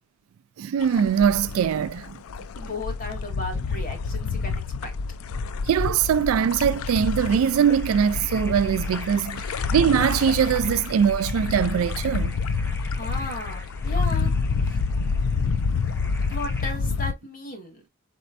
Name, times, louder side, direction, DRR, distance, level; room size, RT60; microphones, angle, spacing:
voice 1, 0.6-2.2 5.6-12.4, right 8 dB, 80° right, 0.3 m, -22 dB
sound 1, 0.8-17.1, left 4 dB, 85° left, 0.4 m, -28 dB
voice 2, 2.6-4.9 9.4-9.6 13.0-14.3 14.6-14.8 16.3-17.8, left 2 dB, 40° left, 1.7 m, -35 dB
sound 2, 7.2-16.7, left 1 dB, 10° left, 0.9 m, -45 dB
4.4 x 4.1 x 2.5 m
head